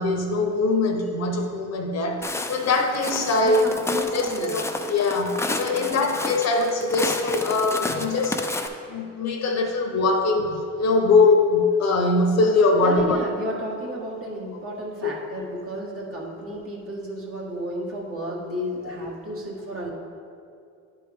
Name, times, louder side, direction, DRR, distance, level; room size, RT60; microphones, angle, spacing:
voice 1, 0.0-3.6 4.1-4.6 4.9-8.4 8.9-13.2 15.0-15.1 18.8-18.9, left 3 dB, 60° left, 3 dB, 0.9 m, -22 dB
Walk footsteps, 2.2-8.7, left 2 dB, 10° left, 0.4 m, -31 dB
voice 2, 3.4-4.6 5.7-6.0 12.8-19.9, right 1 dB, 45° right, -2 dB, 1.6 m, -33 dB
10.0 x 4.5 x 3.5 m, 2.3 s
cardioid pair, 90°, 30 cm